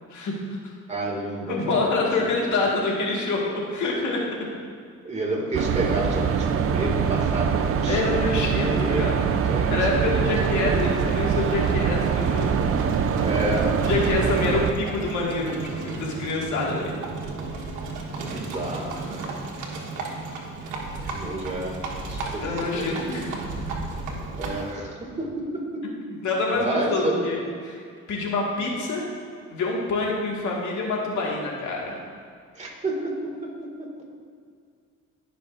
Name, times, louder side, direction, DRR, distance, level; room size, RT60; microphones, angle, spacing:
voice 1, 0.1-0.7 1.5-4.4 7.9-9.3 9.7-12.7 13.8-16.9 21.1-21.3 22.4-23.4 26.2-27.8 28.1-29.1 29.5-32.0, left 3 dB, 75° left, -2 dB, 1.9 m, -26 dB
voice 2, 0.9-2.1 5.0-10.1 10.5-10.8 13.2-13.8 18.2-19.3 21.1-23.3 24.4-25.8 26.5-27.3 32.5-33.9, right 1 dB, 25° right, -2 dB, 2.1 m, -30 dB
sound 1, 5.5-14.7, right 7 dB, 50° right, 0.6 m, -23 dB
Livestock farm animals working animals, 10.3-24.7, right 3 dB, 85° right, 1.3 m, -34 dB
15.5 x 5.7 x 2.6 m, 2.2 s
cardioid pair, 90°, 30 cm